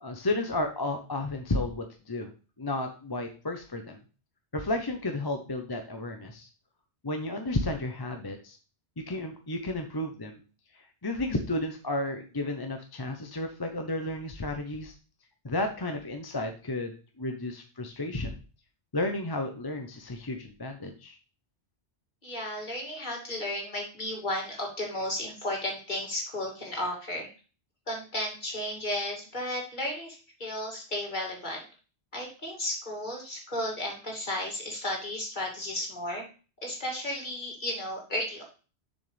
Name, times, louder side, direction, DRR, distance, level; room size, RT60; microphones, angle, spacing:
voice 1, 0.0-2.3 2.6-4.0 4.5-6.5 7.0-8.6 9.1-10.4 11.0-14.9 15.4-18.4 18.9-21.2, left 2 dB, 25° left, 4 dB, 0.7 m, -32 dB
voice 2, 22.2-27.3 27.9-31.6 32.1-36.3 36.6-38.4, left 1 dB, 45° left, -1 dB, 2.7 m, -34 dB
7.2 x 6.3 x 3.3 m, 0.35 s
omnidirectional pair, 1.1 m